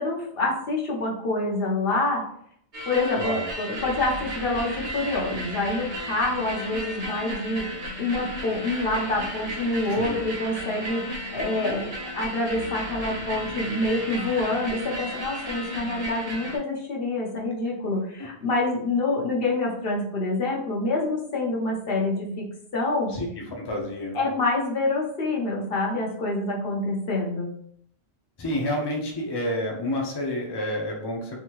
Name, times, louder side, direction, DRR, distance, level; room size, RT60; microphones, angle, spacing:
voice 1, 0.0-2.3 2.9-23.1 24.1-27.5, left 2 dB, 65° left, -2 dB, 1.0 m, -27 dB
sound 1, 2.7-16.6, equal, 40° right, 0.8 m, -34 dB
voice 2, 23.1-24.2 28.4-31.4, left 1 dB, 30° left, 0 dB, 0.6 m, -29 dB
3.6 x 2.6 x 2.9 m, 0.66 s
omnidirectional pair, 1.1 m